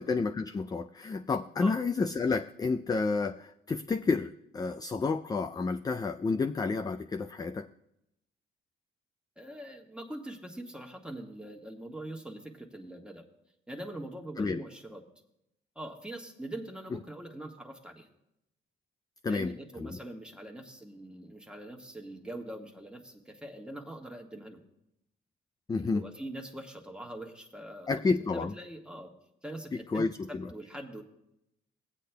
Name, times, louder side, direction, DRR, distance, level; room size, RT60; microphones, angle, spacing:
voice 1, 0.0-7.7 14.4-14.6 19.2-19.9 25.7-26.1 27.9-28.5 29.9-30.4, left 4 dB, 20° left, 7 dB, 0.4 m, -30 dB
voice 2, 9.4-13.2 13.7-15.0 15.7-18.1 19.3-24.6 25.8-27.9 28.3-29.1 29.4-31.0, right 1 dB, 5° right, 2 dB, 1.4 m, -43 dB
18.0 x 8.3 x 2.3 m, 0.83 s
cardioid pair, 90°, 20 cm